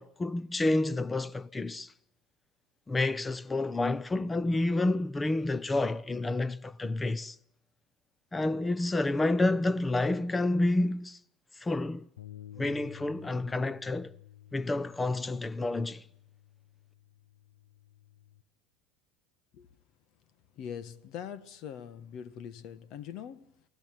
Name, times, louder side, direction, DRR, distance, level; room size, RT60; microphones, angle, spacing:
voice 1, 0.0-1.9 2.9-7.4 8.3-11.2 11.6-12.1 12.6-14.1 14.5-16.0, left 2 dB, 15° left, 1.0 m, -29 dB
Bass guitar, 12.2-18.4, left 11 dB, 85° left, 1.2 m, -52 dB
voice 2, 20.5-23.6, left 8 dB, 55° left, 1.4 m, -42 dB
28.5 x 19.5 x 7.6 m
hypercardioid pair, 75°, 0 cm